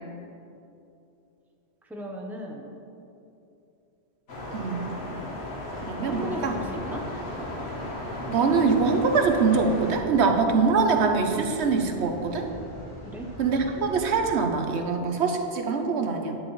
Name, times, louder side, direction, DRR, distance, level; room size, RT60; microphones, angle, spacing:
voice 1, 1.8-2.7 6.1-7.1 13.0-13.3, equal, ahead, 0 dB, 0.8 m, -36 dB
sound 1, 4.3-10.0, left 1 dB, 70° left, 1.6 m, -35 dB
voice 2, 4.5-4.9 5.8-6.5 8.3-12.5 13.4-16.4, right 4 dB, 80° right, 4 dB, 1.1 m, -23 dB
sound 2, 6.1-14.3, equal, 85° left, 1.7 m, -42 dB
10.0 x 9.6 x 3.2 m, 2.8 s
omnidirectional pair, 1.1 m